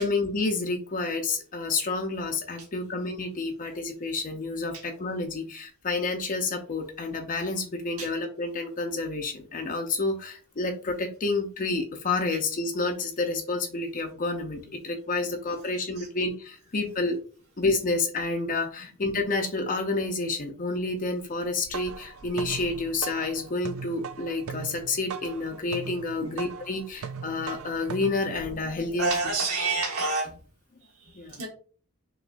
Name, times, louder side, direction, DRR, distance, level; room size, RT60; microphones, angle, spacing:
voice 1, 0.0-17.2 17.6-29.1 31.2-31.4, left 3 dB, 40° left, 4 dB, 0.6 m, -29 dB
sound 1, 21.4-29.1, right 6 dB, 70° right, 0.4 m, -40 dB
voice 2, 29.0-30.3 31.0-31.5, right 3 dB, 85° right, -1 dB, 1.2 m, -28 dB
6.1 x 3.1 x 2.5 m, 0.40 s
head